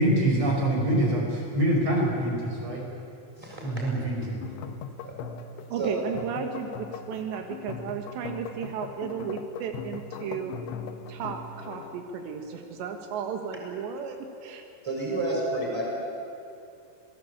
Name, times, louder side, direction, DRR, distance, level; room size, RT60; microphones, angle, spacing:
voice 1, 0.0-2.8 3.6-4.4, right 1 dB, 40° right, -1 dB, 6.5 m, -25 dB
sound 1, 4.4-12.0, left 6 dB, 80° left, 3.2 m, -40 dB
voice 2, 5.7-10.5 11.1-14.6, right 7 dB, 85° right, 4 dB, 3.8 m, -34 dB
voice 3, 14.8-15.8, right 2 dB, 5° right, -3 dB, 6.5 m, -29 dB
27.0 x 18.0 x 8.8 m, 2.6 s
omnidirectional pair, 4.9 m